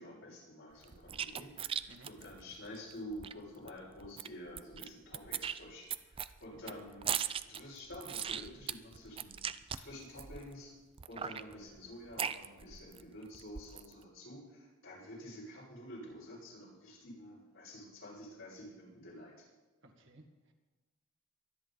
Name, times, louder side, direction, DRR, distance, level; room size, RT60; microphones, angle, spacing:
voice 1, 0.0-7.1 7.4-9.3 9.7-10.7 11.1-19.5, equal, 70° left, -4 dB, 6.3 m, -49 dB
sound 1, 0.8-3.3 3.7-3.8 4.0-4.9 5.1-10.5 11.0-13.0 13.3-13.9, right 8 dB, 25° right, 0.4 m, -39 dB
voice 2, 19.8-20.5, right 1 dB, 60° right, 3 dB, 1.9 m, -58 dB
23.5 x 10.5 x 4.1 m, 1.2 s
head